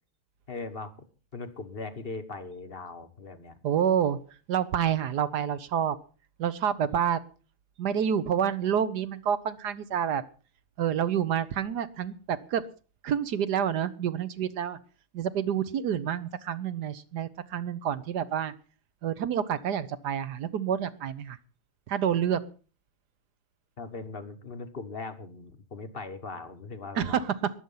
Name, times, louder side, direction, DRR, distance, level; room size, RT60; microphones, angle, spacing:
voice 1, 0.5-0.9 1.3-3.6 23.8-27.2, left 3 dB, 35° left, 8 dB, 1.1 m, -39 dB
voice 2, 3.6-4.2 4.5-6.0 6.4-7.2 7.8-10.2 10.8-12.6 13.0-14.8 15.1-18.5 19.0-21.4 21.9-22.4 27.0-27.5, right 8 dB, 60° right, 15 dB, 1.2 m, -28 dB
21.0 x 8.0 x 5.5 m, 0.37 s
omnidirectional pair, 2.4 m